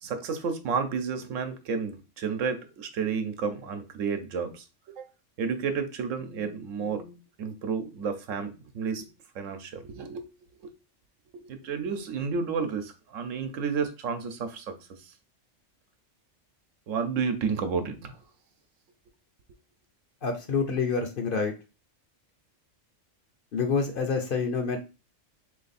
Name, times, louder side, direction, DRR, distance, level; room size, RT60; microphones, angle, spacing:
voice 1, 0.0-5.1 5.4-9.1 9.3-10.3 10.6-10.7 11.3-14.7 15.0-15.1 16.9-18.2, right 5 dB, 85° right, 8 dB, 1.1 m, -31 dB
voice 2, 20.2-21.5 23.5-24.8, left 5 dB, 55° left, 4 dB, 0.7 m, -27 dB
3.3 x 2.9 x 4.0 m, 0.31 s
omnidirectional pair, 1.3 m